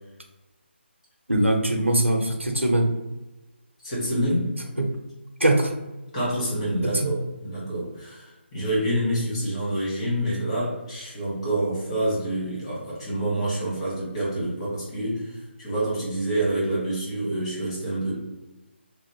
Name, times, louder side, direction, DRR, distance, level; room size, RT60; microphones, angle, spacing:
voice 1, 1.3-2.9 4.8-4.9 5.4-5.7 6.8-7.2, right 1 dB, 90° right, 4 dB, 0.5 m, -22 dB
voice 2, 3.8-4.5 6.1-18.2, right 1 dB, 30° left, -7 dB, 1.3 m, -27 dB
2.9 x 2.1 x 2.9 m, 1.1 s
figure-of-eight pair, 150°, 6 cm